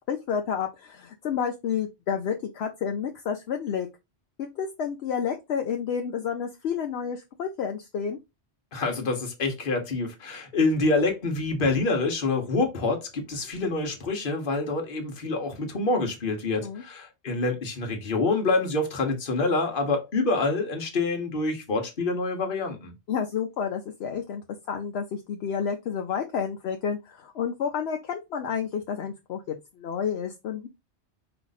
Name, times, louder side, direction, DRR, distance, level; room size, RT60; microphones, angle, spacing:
voice 1, 0.1-3.9 4.4-8.2 16.5-16.8 23.1-30.7, left 7 dB, 70° left, 0.9 m, -30 dB
voice 2, 8.7-22.9, left 3 dB, 50° left, 1.2 m, -26 dB
4.5 x 2.6 x 3.9 m
omnidirectional pair, 1.2 m